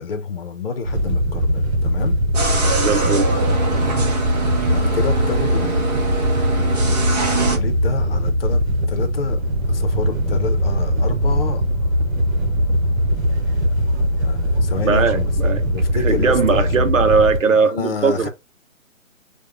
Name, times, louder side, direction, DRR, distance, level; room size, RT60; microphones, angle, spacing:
voice 1, 0.0-2.2 3.9-4.1 4.7-9.4 9.7-11.6 14.2-16.9 17.4-18.3, left 5 dB, 45° left, 0.8 m, -29 dB
Wind / Boat Water vehicle, 0.8-17.4, equal, 50° right, 1.3 m, -20 dB
sound 1, 2.3-7.6, right 4 dB, 30° right, 0.9 m, -24 dB
voice 2, 2.8-3.3 14.8-15.6 16.0-18.3, right 5 dB, 70° right, 0.8 m, -19 dB
sound 2, 9.3-16.5, equal, 15° left, 0.5 m, -37 dB
4.7 x 2.4 x 3.1 m
figure-of-eight pair, 140°, 41 cm